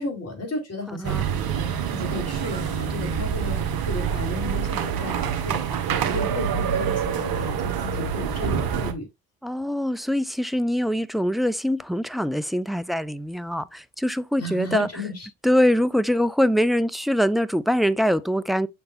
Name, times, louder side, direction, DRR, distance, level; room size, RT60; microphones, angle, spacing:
voice 1, 0.0-9.1 14.4-15.3, left 2 dB, 35° left, 4.3 m, -34 dB
voice 2, 0.9-1.5 9.4-14.9 15.4-18.7, equal, ahead, 0.6 m, -23 dB
sound 1, 1.0-8.9, right 7 dB, 60° right, 1.5 m, -26 dB
7.1 x 6.6 x 2.5 m
hypercardioid pair, 55°, 42 cm